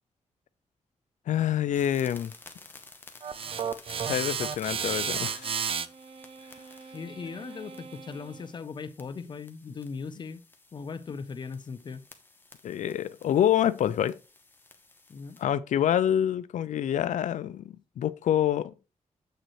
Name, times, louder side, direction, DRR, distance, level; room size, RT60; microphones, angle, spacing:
voice 1, 1.3-2.3 4.0-5.5 12.6-14.2 15.4-17.6 18.0-18.7, left 10 dB, 90° left, 0.4 m, -26 dB
sound 1, 1.7-15.4, left 3 dB, 15° left, 0.9 m, -53 dB
sound 2, 3.2-8.4, right 7 dB, 50° right, 0.4 m, -34 dB
voice 2, 6.9-10.4 10.7-12.0 15.1-15.4, left 5 dB, 40° left, 0.6 m, -39 dB
7.6 x 6.6 x 3.1 m
wide cardioid pair, 160°, 12 cm